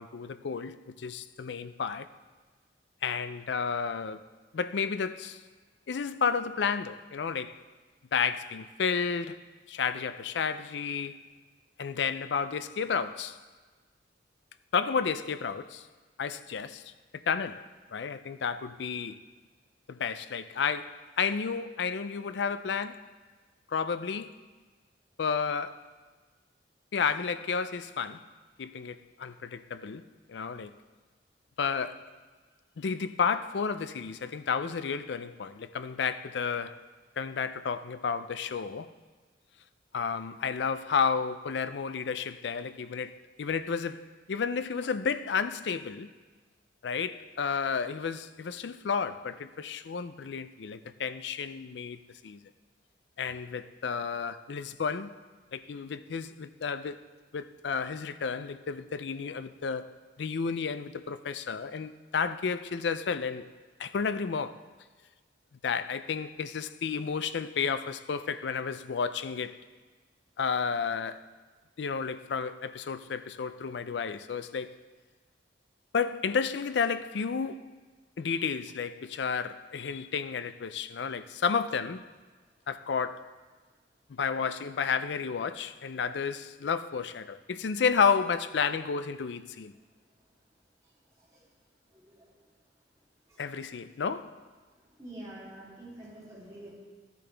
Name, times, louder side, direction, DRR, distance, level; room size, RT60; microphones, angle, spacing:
voice 1, 0.0-2.1 3.0-4.3 4.5-5.4 5.9-7.6 8.1-11.2 11.8-13.4 14.7-15.9 16.2-19.2 19.9-23.1 23.7-24.4 25.2-25.9 26.9-28.3 28.6-30.7 31.6-32.1 32.8-36.8 37.2-38.9 39.9-46.1 46.8-52.4 53.2-55.1 55.5-57.0 57.3-63.5 63.8-64.6 65.6-69.6 70.4-71.2 71.8-74.8 75.9-77.7 78.2-82.0 82.7-83.3 84.1-89.7 93.4-94.4, left 6 dB, 70° left, 0.4 m, -32 dB
voice 2, 91.9-92.3 93.3-93.4 95.0-96.7, right 1 dB, 20° right, 3.2 m, -46 dB
14.0 x 10.0 x 3.4 m
head